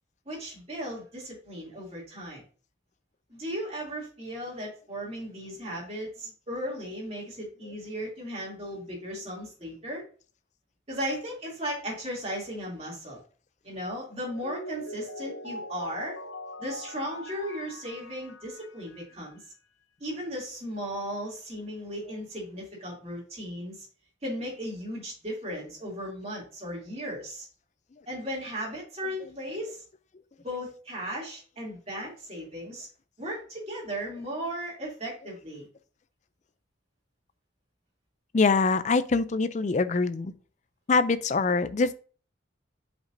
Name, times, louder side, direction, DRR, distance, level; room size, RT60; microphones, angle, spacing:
voice 1, 0.2-2.4 3.3-10.0 10.9-13.2 13.6-16.2 16.6-19.4 20.0-23.9 24.2-27.5 28.1-29.8 30.4-32.9 33.2-35.7, equal, 30° right, 2.8 m, -36 dB
Mallet percussion, 14.2-19.1, left 1 dB, 75° left, 0.8 m, -41 dB
voice 2, 38.3-40.3 40.9-41.9, left 4 dB, 35° left, 0.4 m, -24 dB
8.0 x 5.2 x 2.7 m
head